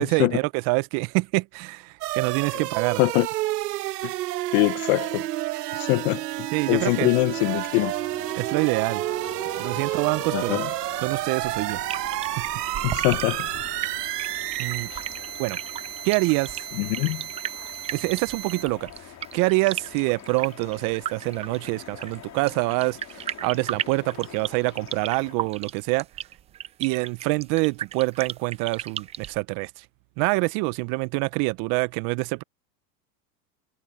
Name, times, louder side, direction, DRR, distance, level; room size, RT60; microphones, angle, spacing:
voice 1, 0.0-3.0 6.5-7.1 8.4-9.0 9.6-10.6 11.0-11.8 12.4-12.5 14.6-14.9 15.4-15.6 16.0-16.6 17.9-18.9 19.3-26.1 26.8-29.8 30.2-32.4, right 26 dB, 45° right, 0.7 m, -26 dB
sound 1, 2.0-18.6, right 16 dB, 80° right, 1.4 m, -31 dB
voice 2, 4.5-5.2 5.8-6.2 6.7-7.9 10.3-10.7 12.8-13.5 16.8-17.2, left 26 dB, 50° left, 0.7 m, -23 dB
sound 2, 7.3-25.3, left 12 dB, 35° left, 3.1 m, -45 dB
sound 3, 11.4-29.4, right 10 dB, 15° right, 0.3 m, -35 dB
supercardioid pair, 120°, 47 cm